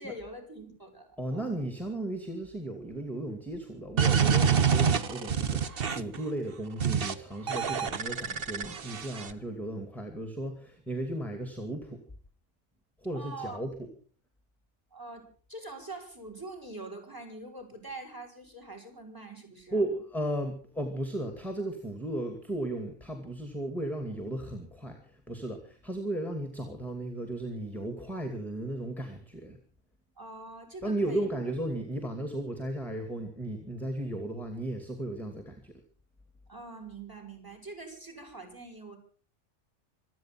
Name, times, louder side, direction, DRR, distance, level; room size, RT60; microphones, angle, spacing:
voice 1, 0.0-1.5 13.1-13.6 14.9-19.8 30.2-31.3 36.5-39.0, right 2 dB, 15° right, 5 dB, 5.1 m, -44 dB
voice 2, 1.2-12.0 13.0-13.9 19.7-29.6 30.8-35.8, right 1 dB, ahead, 6 dB, 2.3 m, -35 dB
sound 1, 4.0-6.2 6.8-7.1 7.5-9.3, right 7 dB, 55° right, 1.2 m, -26 dB
25.5 x 9.4 x 5.9 m, 0.42 s
omnidirectional pair, 1.2 m